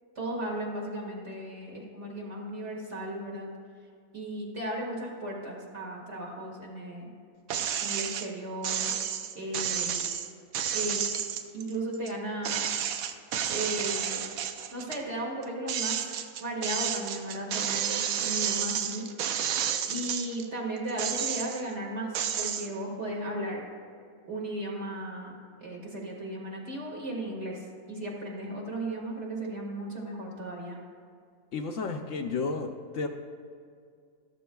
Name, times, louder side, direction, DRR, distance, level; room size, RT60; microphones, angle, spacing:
voice 1, 0.2-3.5 4.1-7.1 7.8-8.9 9.3-10.0 10.7-11.0 11.5-12.6 13.5-14.2 14.7-16.0 16.4-19.1 19.9-23.6 24.2-30.8, right 1 dB, 50° right, -2 dB, 2.2 m, -35 dB
sound 1, 7.5-8.3 8.6-12.1 12.4-15.0 15.4-20.5 20.9-21.7 22.1-22.7, right 9 dB, 75° right, 1.0 m, -31 dB
voice 2, 31.5-33.1, left 4 dB, 65° left, 4 dB, 0.9 m, -32 dB
13.5 x 13.0 x 2.3 m, 2.2 s
omnidirectional pair, 1.5 m